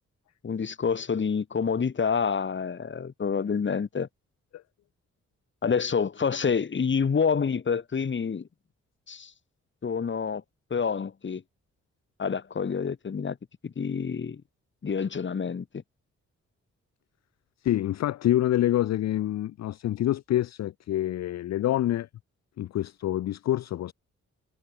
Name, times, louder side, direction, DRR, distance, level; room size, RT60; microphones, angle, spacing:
voice 1, 0.4-4.1 5.6-8.5 9.1-9.3 9.8-10.4 10.7-11.4 12.2-13.4 13.6-14.4 14.8-15.6, left 6 dB, 40° left, 1.1 m, -27 dB
voice 2, 17.6-22.1 22.6-23.9, left 13 dB, 60° left, 0.5 m, -26 dB
supercardioid pair, 50°, 30 cm